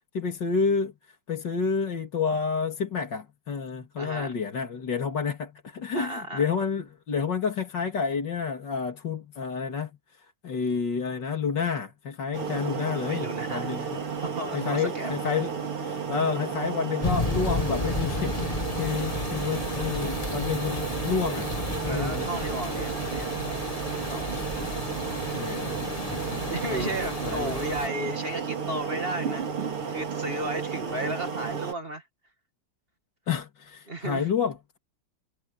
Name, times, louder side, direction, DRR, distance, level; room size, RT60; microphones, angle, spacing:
voice 1, 0.1-0.9 1.3-9.9 10.4-14.0 14.5-15.5 15.8-21.5 21.8-22.3 25.3-27.6 33.3-34.8, left 6 dB, 55° left, 3.1 m, -30 dB
voice 2, 4.0-4.3 6.0-6.5 13.1-15.1 15.9-16.0 21.3-21.4 21.9-23.6 24.1-24.4 26.5-29.5 29.9-32.0 33.9-34.3, right 1 dB, 25° right, 2.0 m, -34 dB
sound 1, 12.3-31.7, right 6 dB, 85° right, 3.7 m, -32 dB
sound 2, 17.0-27.9, left 3 dB, 20° left, 1.2 m, -33 dB
omnidirectional pair, 2.4 m